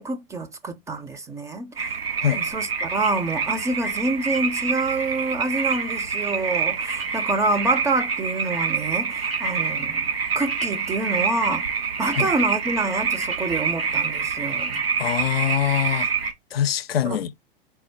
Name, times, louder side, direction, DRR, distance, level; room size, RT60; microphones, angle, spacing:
voice 1, 0.0-1.7 2.5-10.0 10.4-11.7 12.0-14.8 17.0-17.2, right 2 dB, 10° right, 0.4 m, -27 dB
sound 1, 1.8-16.3, right 6 dB, 85° right, 1.0 m, -26 dB
voice 2, 15.0-16.1 16.5-17.3, left 10 dB, 80° left, 0.5 m, -24 dB
4.4 x 2.0 x 4.4 m
figure-of-eight pair, 105°, 29 cm